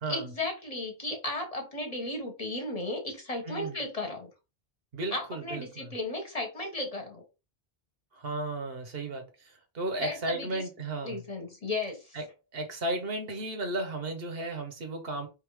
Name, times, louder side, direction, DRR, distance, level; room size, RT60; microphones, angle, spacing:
voice 1, 0.1-4.3 5.1-7.2 10.0-10.6 11.0-12.2, left 2 dB, 35° left, 1.2 m, -35 dB
voice 2, 3.5-3.8 4.9-5.9 8.1-11.2 12.1-12.2 12.5-15.3, right 2 dB, 70° right, 1.2 m, -34 dB
3.6 x 2.7 x 4.7 m
omnidirectional pair, 1.0 m